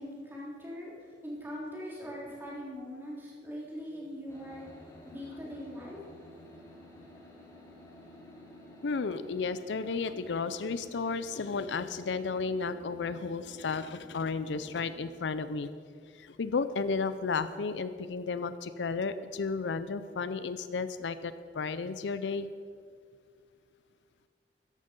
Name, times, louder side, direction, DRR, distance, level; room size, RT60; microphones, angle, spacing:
voice 1, 0.0-4.7 5.0-6.0, equal, 10° right, -5 dB, 3.6 m, -41 dB
sound 1, 4.3-15.0, left 1 dB, 15° left, 2.5 m, -52 dB
voice 2, 8.8-15.7 16.1-22.5, left 4 dB, 80° left, 12 dB, 0.5 m, -33 dB
14.0 x 11.0 x 5.3 m, 2.1 s
head